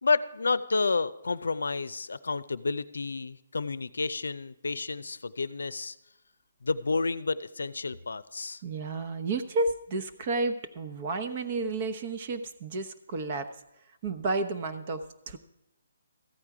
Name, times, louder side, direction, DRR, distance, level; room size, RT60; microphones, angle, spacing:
voice 1, 0.0-6.0 6.6-8.6, left 4 dB, 85° left, 16 dB, 0.5 m, -30 dB
voice 2, 8.6-13.5 14.0-15.4, right 3 dB, 40° right, 10 dB, 0.9 m, -31 dB
14.5 x 8.9 x 4.8 m, 0.88 s
hypercardioid pair, 155°, 0 cm